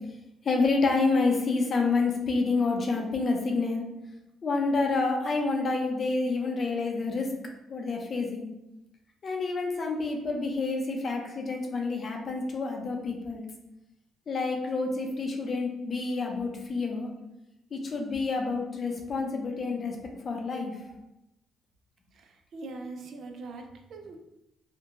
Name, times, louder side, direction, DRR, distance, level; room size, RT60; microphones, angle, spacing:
voice 1, 0.4-3.8 4.4-7.3 7.7-8.5 9.2-13.4 14.3-17.1 17.7-20.0 20.2-20.7, left 3 dB, 45° left, 2 dB, 0.5 m, -28 dB
voice 2, 22.1-24.2, right 3 dB, 65° right, 4 dB, 0.3 m, -42 dB
2.9 x 2.1 x 2.5 m, 0.91 s
cardioid pair, 90°, 0 cm